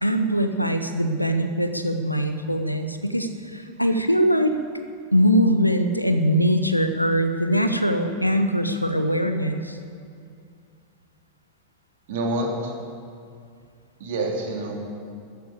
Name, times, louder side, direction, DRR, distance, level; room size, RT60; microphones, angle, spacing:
voice 1, 0.0-4.5 5.1-9.8, equal, 90° left, 8 dB, 1.1 m, -22 dB
voice 2, 12.1-12.7 14.0-14.9, right 1 dB, 55° right, 0 dB, 3.1 m, -27 dB
14.0 x 9.6 x 8.3 m, 2.3 s
figure-of-eight pair, 90°, 0 cm